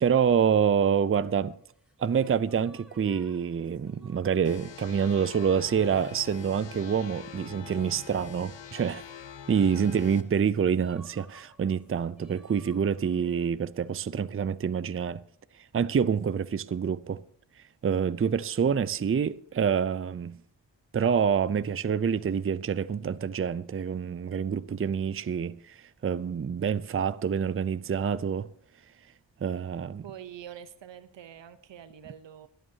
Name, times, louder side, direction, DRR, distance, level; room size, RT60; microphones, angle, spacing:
voice 1, 0.0-1.5 2.0-9.0 9.5-15.2 15.7-17.2 17.8-20.4 20.9-28.5 29.4-30.0, right 7 dB, 30° right, 0.5 m, -27 dB
sound 1, 0.8-13.5, left 1 dB, ahead, 3.1 m, -57 dB
sound 2, 4.4-10.2, left 8 dB, 80° left, 1.1 m, -45 dB
voice 2, 30.0-32.5, right 10 dB, 80° right, 0.9 m, -45 dB
25.0 x 9.2 x 2.8 m
cardioid pair, 45°, 43 cm